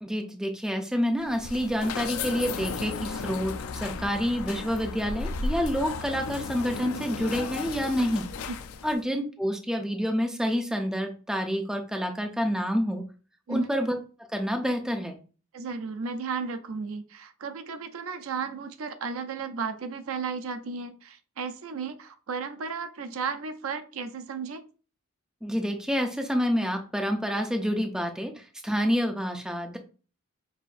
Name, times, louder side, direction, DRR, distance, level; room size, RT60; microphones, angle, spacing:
voice 1, 0.0-8.3 8.8-13.1 13.5-14.0 14.3-15.2 25.4-29.8, equal, 5° right, 4 dB, 0.5 m, -28 dB
sound 1, 1.2-9.0, left 4 dB, 80° left, 0.4 m, -34 dB
voice 2, 15.5-24.6, right 5 dB, 75° right, 9 dB, 0.5 m, -34 dB
5.5 x 2.5 x 2.5 m, 0.37 s
head